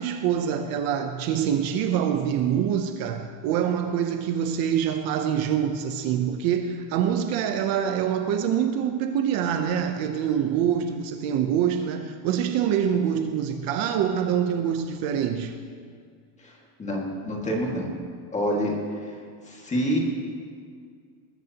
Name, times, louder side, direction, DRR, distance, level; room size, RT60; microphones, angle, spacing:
voice 1, 0.0-15.5, right 8 dB, 50° right, 0.8 m, -25 dB
voice 2, 16.8-17.9 18.3-18.7 19.5-20.0, equal, 15° left, 2.0 m, -27 dB
20.0 x 14.5 x 2.9 m
cardioid pair, 165°, 45 cm